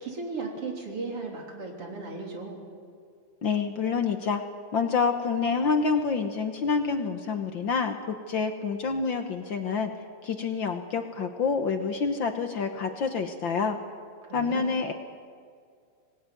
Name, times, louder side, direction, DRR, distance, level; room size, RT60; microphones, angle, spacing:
voice 1, 0.0-2.6 14.3-14.7, right 3 dB, 45° right, 1 dB, 4.3 m, -36 dB
voice 2, 3.4-4.4 4.7-9.9 10.2-13.8 14.3-14.9, left 5 dB, 65° left, 6 dB, 1.2 m, -27 dB
26.0 x 19.5 x 9.3 m, 2.2 s
omnidirectional pair, 3.8 m